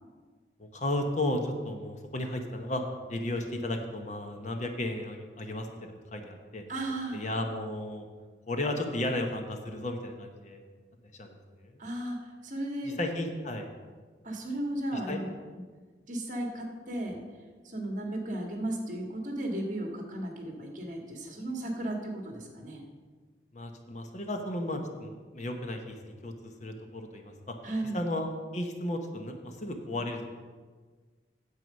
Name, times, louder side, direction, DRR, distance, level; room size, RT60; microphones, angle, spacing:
voice 1, 0.6-2.8 3.1-6.6 7.1-8.1 8.5-10.6 11.2-11.7 12.8-13.7 14.9-15.2 23.5-27.5 27.9-30.2, left 1 dB, 40° left, 5 dB, 0.9 m, -34 dB
voice 2, 6.7-7.2 11.8-13.0 14.2-15.3 15.5-15.6 16.1-17.2 17.6-22.8 27.6-28.0, right 1 dB, 45° right, 2 dB, 1.7 m, -35 dB
9.4 x 7.6 x 5.4 m, 1.5 s
head